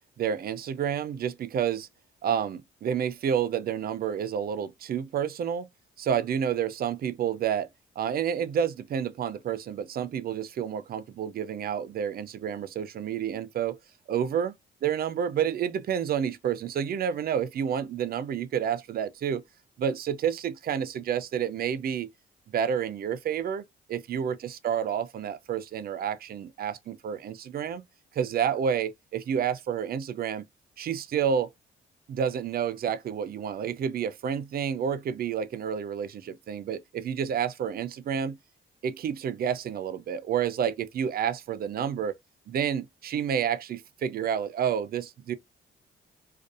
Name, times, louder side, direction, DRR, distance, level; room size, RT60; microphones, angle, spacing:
voice 1, 0.2-1.9 2.2-5.7 6.0-7.7 8.0-13.8 14.1-14.5 14.8-19.4 19.8-22.1 22.5-23.6 23.9-27.8 28.1-30.4 30.8-31.5 32.1-38.4 38.8-42.1 42.5-45.3, right 8 dB, 50° right, 0.4 m, -29 dB
2.6 x 2.2 x 2.4 m
cardioid pair, 90°, 20 cm